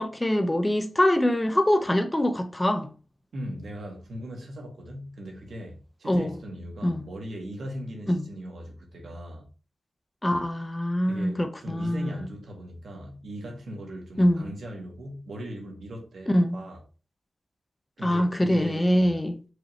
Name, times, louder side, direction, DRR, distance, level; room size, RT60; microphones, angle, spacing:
voice 1, 0.0-2.9 6.1-6.4 6.8-7.0 8.1-8.3 10.2-12.2 14.2-14.5 16.3-16.6 18.0-19.4, left 1 dB, 15° left, 0.5 m, -24 dB
voice 2, 3.3-9.5 11.0-16.8 18.0-19.1, equal, 75° right, 1.3 m, -39 dB
4.8 x 2.6 x 3.0 m
wide cardioid pair, 115°, 0 cm